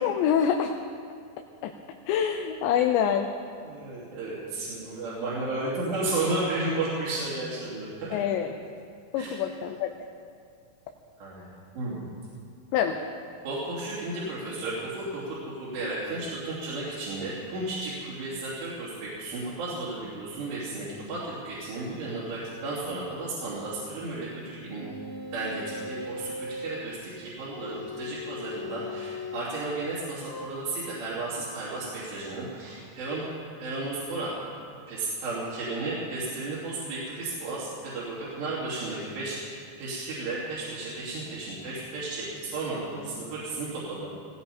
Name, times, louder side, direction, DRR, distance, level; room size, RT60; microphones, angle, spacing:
voice 1, 0.0-0.7 1.6-1.7 2.1-3.3 8.1-8.5 9.1-9.9 12.7-13.0, left 8 dB, 85° left, 4 dB, 3.0 m, -25 dB
voice 2, 3.7-8.2 9.1-9.3 11.2-11.5 11.8-12.0 13.4-24.9 25.3-33.2 33.6-34.4 34.9-39.4 39.8-44.1, right 2 dB, 75° right, -9 dB, 5.2 m, -33 dB
sound 1, 24.8-26.8 27.5-29.5 30.3-30.5, left 2 dB, 45° left, 2.9 m, -38 dB
19.0 x 16.5 x 4.3 m, 2.3 s
omnidirectional pair, 5.0 m